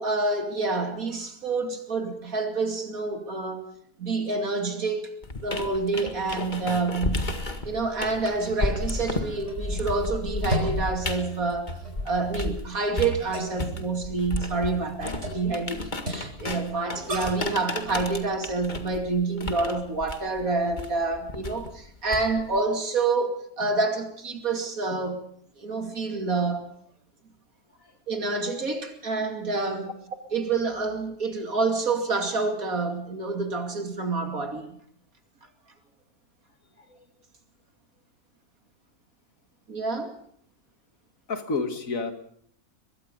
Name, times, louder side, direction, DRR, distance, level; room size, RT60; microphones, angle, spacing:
voice 1, 0.0-3.6 4.0-5.1 5.4-7.3 7.6-11.8 12.0-15.8 16.1-25.2 25.6-26.7 28.1-29.9 30.3-34.8 39.7-40.2, right 3 dB, 65° right, 3.1 m, -28 dB
sound 1, 5.2-12.6 13.0-22.6, left 2 dB, 30° left, 2.0 m, -33 dB
sound 2, 8.4-17.5, right 1 dB, 50° right, 5.9 m, -37 dB
voice 2, 41.3-42.1, left 4 dB, 65° left, 2.3 m, -30 dB
23.0 x 22.0 x 5.4 m
omnidirectional pair, 1.6 m